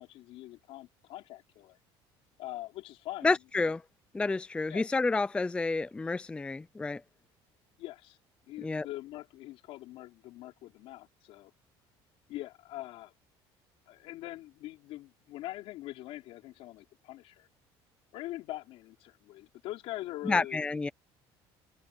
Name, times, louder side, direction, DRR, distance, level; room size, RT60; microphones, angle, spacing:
voice 1, 0.0-1.8 2.4-3.4 3.7-3.8 4.7-4.9 7.8-8.2 8.5-11.5 12.3-13.1 13.9-17.5 18.1-20.8, left 16 dB, 70° left, 4.2 m, -43 dB
voice 2, 3.2-3.8 4.1-7.0 8.6-8.9 20.3-20.9, left 3 dB, 10° left, 0.4 m, -29 dB
cardioid pair, 140°, 10 cm